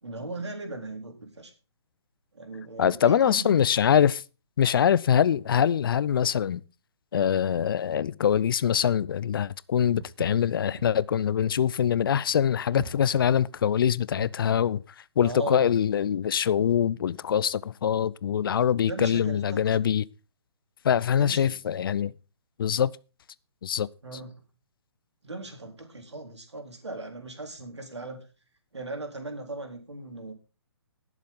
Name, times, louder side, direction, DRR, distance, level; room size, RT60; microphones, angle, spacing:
voice 1, 0.0-1.5 2.3-3.6 15.2-15.7 18.8-19.9 21.2-21.6 24.0-24.4 25.2-28.2 28.7-30.3, right 2 dB, 80° right, 4.0 m, -38 dB
voice 2, 2.8-4.2 4.6-6.6 7.1-14.8 15.2-20.0 20.8-22.1 22.6-22.9 23.6-23.9, left 8 dB, 55° left, 0.6 m, -24 dB
Walk footsteps, 10.0-14.5, right 4 dB, 60° right, 1.7 m, -43 dB
18.5 x 7.4 x 3.7 m
figure-of-eight pair, 135°, 14 cm